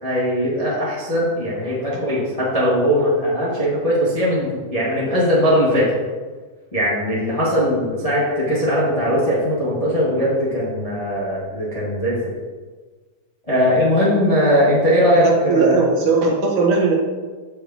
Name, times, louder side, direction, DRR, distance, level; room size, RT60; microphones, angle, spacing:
voice 1, 0.0-5.8 6.7-12.3 13.5-15.8, equal, 20° left, -7 dB, 1.0 m, -19 dB
voice 2, 15.1-16.9, right 4 dB, 70° right, -1 dB, 2.3 m, -18 dB
14.0 x 4.8 x 2.9 m, 1.4 s
omnidirectional pair, 3.8 m